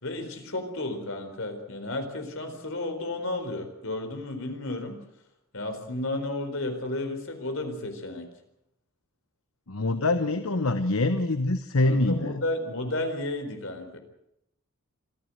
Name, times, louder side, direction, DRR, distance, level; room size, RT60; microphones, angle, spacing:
voice 1, 0.0-5.0 5.5-8.3 11.8-14.0, left 2 dB, 65° left, 6 dB, 4.4 m, -32 dB
voice 2, 9.7-12.4, left 2 dB, 80° left, 9 dB, 1.1 m, -25 dB
26.0 x 14.5 x 8.0 m, 0.78 s
head